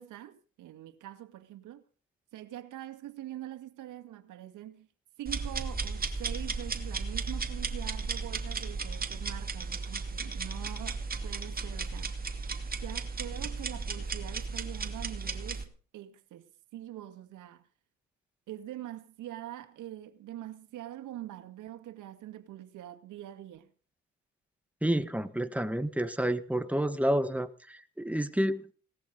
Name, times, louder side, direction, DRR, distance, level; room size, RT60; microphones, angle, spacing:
voice 1, 0.0-1.8 2.3-4.9 5.2-12.1 12.8-16.5 16.7-17.7 18.5-23.7, right 13 dB, 85° right, 2.0 m, -44 dB
sound 1, 5.3-15.6, right 4 dB, 30° right, 2.4 m, -35 dB
voice 2, 24.8-28.6, right 1 dB, 5° right, 1.6 m, -29 dB
18.5 x 13.5 x 5.2 m
cardioid pair, 90°, 30 cm